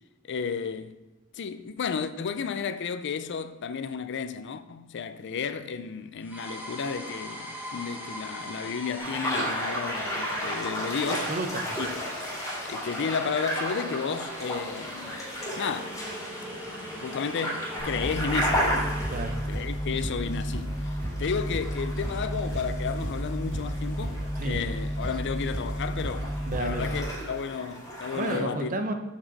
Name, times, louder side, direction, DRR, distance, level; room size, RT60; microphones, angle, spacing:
voice 1, 0.3-0.9 1.3-11.3 11.8-11.9 12.6-15.3 15.6-15.9 17.0-18.6 19.5-28.7, left 6 dB, 55° left, 0.4 m, -32 dB
sound 1, 6.2-19.4, equal, 10° right, 1.2 m, -41 dB
sound 2, 9.0-28.4, equal, 15° left, 2.5 m, -34 dB
voice 2, 11.3-11.8 19.1-19.4 24.4-24.6 26.4-26.9 28.1-28.9, right 2 dB, 40° right, 0.7 m, -31 dB
sound 3, 17.8-27.0, equal, 65° right, 2.8 m, -32 dB
7.2 x 6.1 x 4.0 m
head